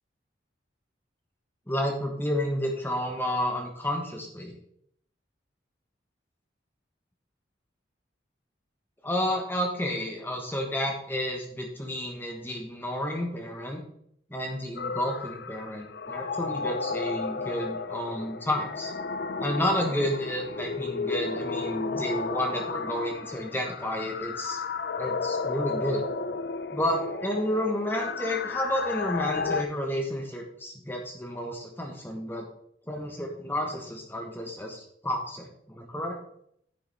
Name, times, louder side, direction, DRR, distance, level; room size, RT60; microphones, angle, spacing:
voice 1, 1.7-4.5 9.0-13.8 14.3-18.9 19.4-24.6 25.0-26.0 26.7-32.5 32.9-36.1, equal, 10° left, 1 dB, 1.4 m, -31 dB
sound 1, 14.8-29.6, left 4 dB, 60° left, 0.5 m, -33 dB
9.8 x 7.0 x 3.5 m, 0.69 s
head